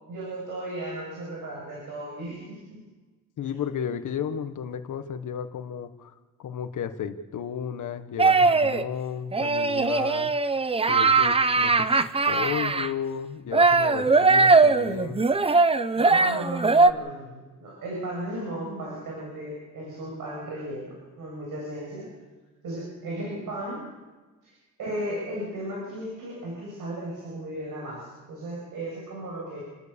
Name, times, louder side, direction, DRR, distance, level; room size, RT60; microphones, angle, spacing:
voice 1, 0.1-2.8 16.0-22.1 22.6-23.8 24.4-24.5 24.8-29.6, right 1 dB, 85° right, -4 dB, 8.0 m, -35 dB
voice 2, 3.4-6.1 6.4-10.3 10.9-11.9 12.3-15.2, left 8 dB, 70° left, 8 dB, 1.6 m, -33 dB
sound 1, 8.2-8.9 9.3-12.9 13.5-16.9, right 3 dB, 20° right, 0.8 m, -20 dB
29.5 x 13.5 x 7.1 m, 1.2 s
cardioid pair, 125°, 31 cm